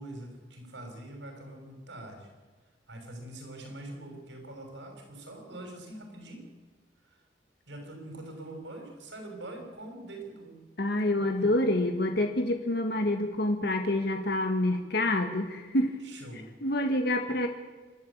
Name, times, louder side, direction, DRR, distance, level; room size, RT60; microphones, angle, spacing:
voice 1, 0.0-2.3 2.9-6.4 7.0-7.2 7.7-10.6 11.0-11.8 16.0-16.5, right 1 dB, 80° right, 3 dB, 6.4 m, -44 dB
voice 2, 10.8-16.0 16.3-17.5, left 1 dB, 65° left, 5 dB, 1.6 m, -27 dB
27.5 x 12.0 x 8.6 m, 1.3 s
head